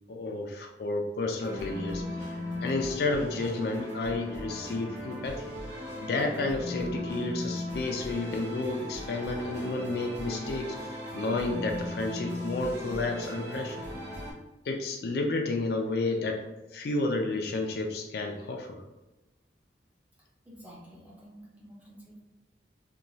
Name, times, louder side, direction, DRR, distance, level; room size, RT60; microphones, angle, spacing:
voice 1, 0.1-5.5 6.0-13.8 14.7-18.8, left 2 dB, 55° left, 2 dB, 0.3 m, -31 dB
sound 1, 1.4-14.3, left 1 dB, 75° right, 0.9 m, -37 dB
voice 2, 20.4-22.2, equal, 10° right, -4 dB, 0.6 m, -50 dB
2.9 x 2.2 x 2.6 m, 1.0 s
head